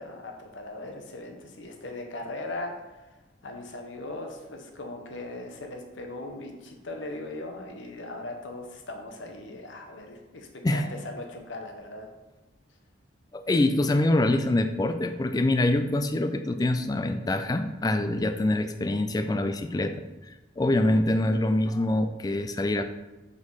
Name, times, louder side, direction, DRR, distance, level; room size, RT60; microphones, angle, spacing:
voice 1, 0.0-12.1, left 2 dB, 75° left, 3 dB, 1.0 m, -39 dB
voice 2, 13.3-20.0 20.6-22.8, left 1 dB, 20° left, 8 dB, 0.3 m, -25 dB
4.9 x 4.2 x 5.5 m, 1.1 s
head